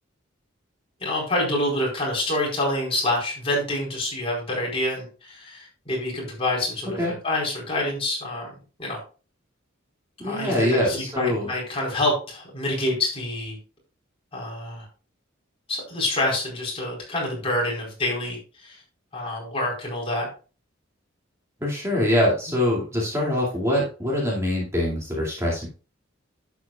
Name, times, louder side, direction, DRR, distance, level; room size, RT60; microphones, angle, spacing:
voice 1, 1.0-8.5 8.8-9.0 10.2-13.6 14.3-14.9 15.7-18.8 19.1-20.3, left 1 dB, 25° left, -3 dB, 4.5 m, -27 dB
voice 2, 10.2-11.5 21.6-25.7, left 1 dB, 15° right, -4 dB, 2.5 m, -24 dB
11.5 x 8.5 x 2.4 m, 0.35 s
head